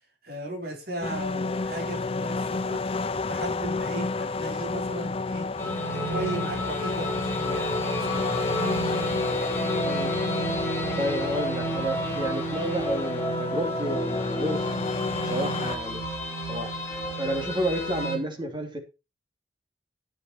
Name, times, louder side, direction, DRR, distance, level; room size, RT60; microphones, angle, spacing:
voice 1, 0.2-2.8 3.3-5.4 5.9-8.8, right 1 dB, 60° right, 4.4 m, -36 dB
sound 1, 1.0-15.8, left 3 dB, 35° left, 0.5 m, -30 dB
sound 2, 5.6-18.2, right 1 dB, 15° left, 5.1 m, -32 dB
voice 2, 9.8-10.2 11.0-14.7 15.2-16.0 16.5-16.7 17.2-18.8, equal, 30° right, 3.0 m, -30 dB
10.0 x 9.8 x 4.5 m
head